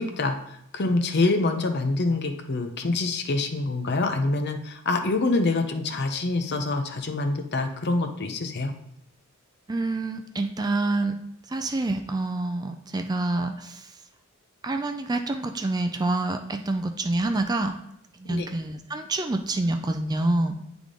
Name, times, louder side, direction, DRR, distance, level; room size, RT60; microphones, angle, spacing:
voice 1, 0.0-8.7 18.2-18.5, left 3 dB, 50° left, 6 dB, 0.7 m, -26 dB
voice 2, 9.7-11.2 11.5-14.0 14.6-17.8 18.2-20.5, right 2 dB, 20° right, 6 dB, 0.4 m, -27 dB
9.8 x 3.6 x 3.7 m, 0.77 s
head